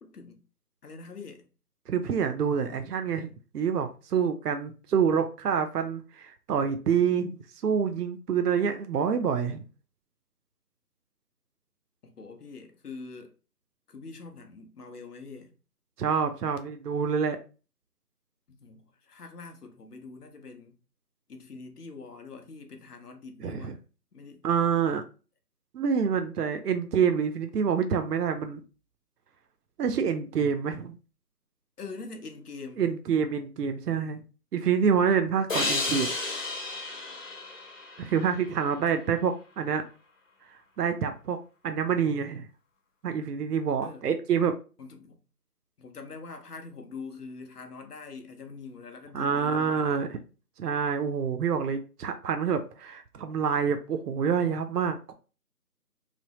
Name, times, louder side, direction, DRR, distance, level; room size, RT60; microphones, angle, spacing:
voice 1, 0.0-0.4 0.8-1.5 12.0-13.3 13.9-15.5 18.5-20.8 21.3-23.8 24.1-24.5 31.8-32.8 38.7-39.0 43.8-44.0 44.8-45.2 45.8-50.0, left 4 dB, 70° left, 0.8 m, -44 dB
voice 2, 1.9-9.7 16.0-17.4 23.4-23.8 24.4-25.0 25.7-28.6 29.8-31.0 32.8-34.2 34.5-36.1 38.0-39.8 40.8-41.4 41.6-42.5 43.0-44.5 49.1-50.2 50.6-55.1, right 7 dB, 75° right, 0.6 m, -27 dB
sound 1, 35.5-38.8, left 3 dB, 55° left, 1.1 m, -32 dB
3.3 x 2.0 x 2.9 m
figure-of-eight pair, 170°, 48 cm